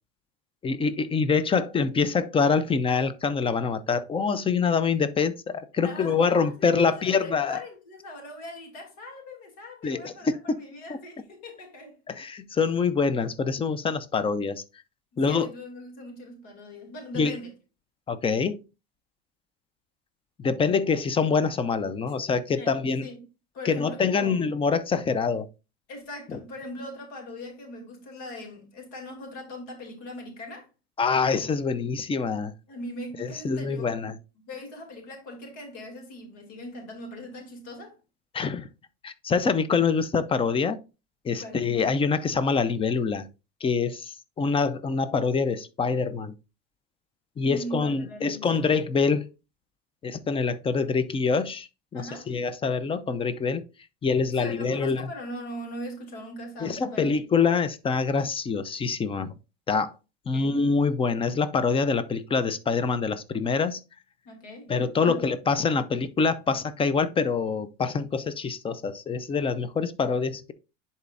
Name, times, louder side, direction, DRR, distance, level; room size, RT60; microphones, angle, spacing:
voice 1, 0.6-7.6 9.8-10.6 12.1-14.6 15.2-15.5 17.1-17.4 18.1-18.6 20.4-23.1 23.6-25.5 26.3-26.4 31.0-32.5 33.2-34.2 38.3-38.7 39.0-40.8 41.2-43.3 43.6-46.3 47.4-49.2 50.0-53.6 54.0-55.1 56.6-59.3 59.7-59.9 60.3-63.8 64.7-70.5, left 5 dB, 20° left, 0.6 m, -25 dB
voice 2, 5.8-6.5 6.8-12.0 15.3-17.5 22.6-23.2 23.5-24.4 25.9-30.7 32.7-34.0 34.5-38.0 41.4-41.6 47.4-48.7 51.9-52.3 54.3-57.2 60.3-60.6 64.2-64.7 65.0-65.2, left 1 dB, 60° left, 2.6 m, -40 dB
10.5 x 4.2 x 2.5 m
supercardioid pair, 120°, 29 cm